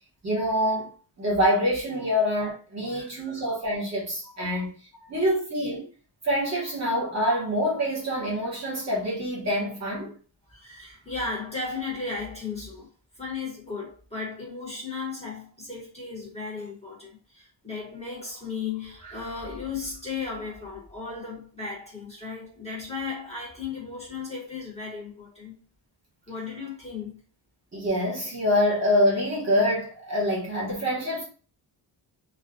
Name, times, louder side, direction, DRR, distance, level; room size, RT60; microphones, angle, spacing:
voice 1, 0.2-0.9 1.2-4.7 5.1-5.9 6.2-10.1 27.7-31.2, equal, 35° right, 0.9 m, -25 dB
voice 2, 2.9-3.4 4.2-4.6 4.9-5.2 10.5-12.9 13.1-25.5 26.3-27.2, left 4 dB, 15° left, 0.9 m, -35 dB
2.3 x 2.2 x 2.5 m
wide cardioid pair, 155°, 49 cm